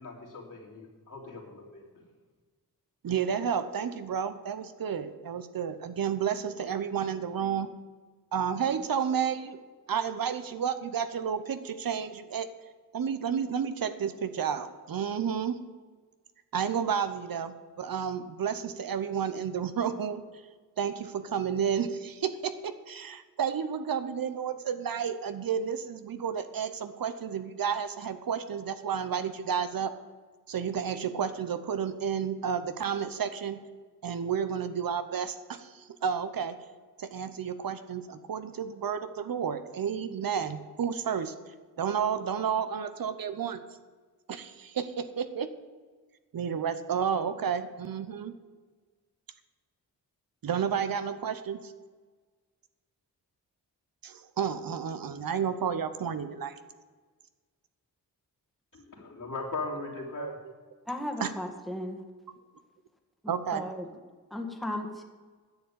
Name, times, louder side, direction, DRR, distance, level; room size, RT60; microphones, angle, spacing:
voice 1, 0.0-1.9 58.7-60.4, left 3 dB, 55° left, -2 dB, 3.3 m, -39 dB
voice 2, 3.0-7.7 8.3-9.6 9.9-12.5 12.9-15.6 16.5-20.2 20.8-29.9 30.5-33.6 34.0-36.6 37.0-41.3 41.8-43.6 44.3-45.5 46.3-48.3 50.4-51.7 54.0-56.5 60.2-60.3 61.2-61.3 63.3-63.7, right 7 dB, 65° right, 11 dB, 0.9 m, -31 dB
voice 3, 60.9-62.0 63.2-63.9 64.3-65.0, left 1 dB, ahead, 2 dB, 1.7 m, -36 dB
11.0 x 6.9 x 8.6 m, 1.4 s
cardioid pair, 70°, 38 cm